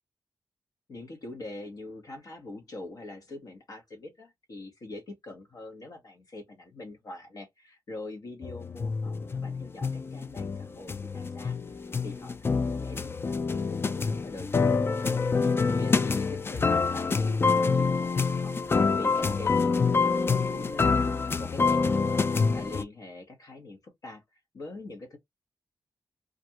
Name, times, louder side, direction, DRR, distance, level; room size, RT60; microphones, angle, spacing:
voice 1, 0.9-11.8 12.0-20.9 21.4-22.2 22.5-24.2 24.5-25.2, left 2 dB, 65° left, 1.0 m, -43 dB
sound 1, 8.4-22.8, left 4 dB, 35° left, 0.3 m, -26 dB
2.4 x 2.2 x 2.8 m
cardioid pair, 65°, 7 cm